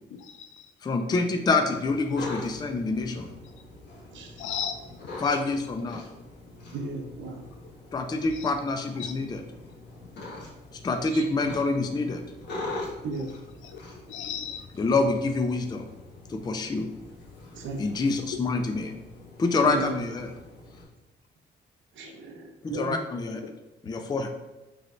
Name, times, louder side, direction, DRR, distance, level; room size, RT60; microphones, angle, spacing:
voice 1, 0.1-0.7 4.4-5.3 8.3-8.5 8.9-9.1 13.6-14.7 18.3-18.4 20.2-20.4, left 8 dB, 80° left, 8 dB, 0.5 m, -37 dB
voice 2, 0.8-3.3 5.2-6.0 7.9-9.4 10.7-12.2 14.8-15.9 16.3-16.9 17.8-19.0 19.4-20.3 22.6-23.4 23.9-24.3, left 3 dB, 20° left, 5 dB, 0.4 m, -26 dB
sound 1, 1.7-20.8, left 2 dB, 60° left, 1.2 m, -43 dB
voice 3, 4.1-4.4 6.7-7.4 11.1-11.2 13.0-13.3 17.5-18.2 19.6-20.0 21.9-23.0, right 3 dB, 70° right, 3 dB, 0.7 m, -35 dB
4.7 x 3.2 x 2.5 m, 1.1 s
cardioid pair, 90°, 20 cm